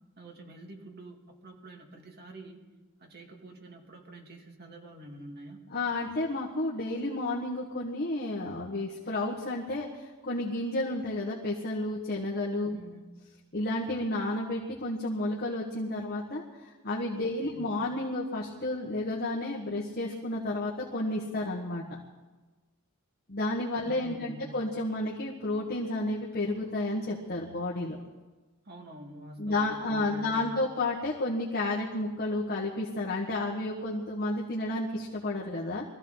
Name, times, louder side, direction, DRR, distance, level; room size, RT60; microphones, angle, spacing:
voice 1, 0.2-2.6 3.0-5.6 12.7-13.1 17.2-17.7 23.8-24.6 28.6-30.7, right 1 dB, 45° right, 1 dB, 2.5 m, -48 dB
voice 2, 5.7-12.8 13.5-22.0 23.3-28.0 29.4-35.8, left 2 dB, 45° left, -3 dB, 1.7 m, -31 dB
23.0 x 15.0 x 4.1 m, 1.2 s
head